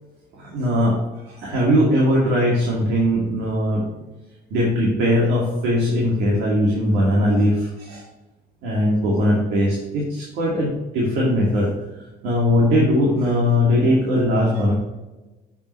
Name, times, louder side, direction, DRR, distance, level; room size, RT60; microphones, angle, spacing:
voice 1, 0.4-1.0 1.3-3.8 4.5-8.0 8.6-11.7 12.2-14.7, equal, 85° right, -4 dB, 2.2 m, -20 dB
7.0 x 6.8 x 3.1 m, 1.1 s
cardioid pair, 110°, 17 cm